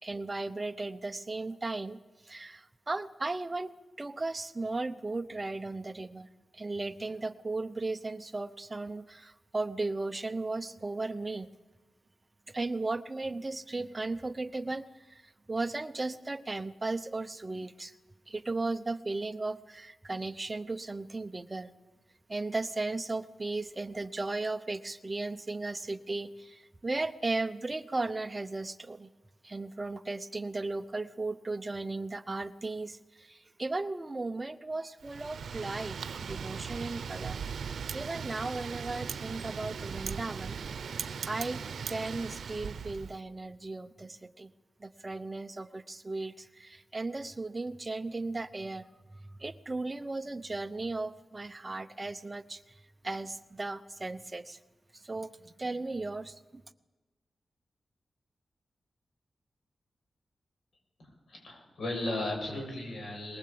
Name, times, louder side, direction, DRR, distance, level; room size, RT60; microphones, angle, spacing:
voice 1, 0.0-2.0 2.2-3.7 4.0-6.3 6.5-11.5 12.5-17.9 18.3-21.7 22.3-29.1 29.4-37.4 37.9-40.6 41.3-41.6 41.9-44.5 44.8-48.9 49.1-52.6 53.0-54.6 54.9-56.6, right 3 dB, 20° right, 12 dB, 0.8 m, -36 dB
Wind, 35.0-43.2, right 6 dB, 85° right, 0.7 m, -38 dB
voice 2, 61.0-63.4, left 1 dB, 80° left, 1 dB, 7.8 m, -36 dB
22.5 x 20.5 x 8.6 m, 1.2 s
wide cardioid pair, 160°, 0 cm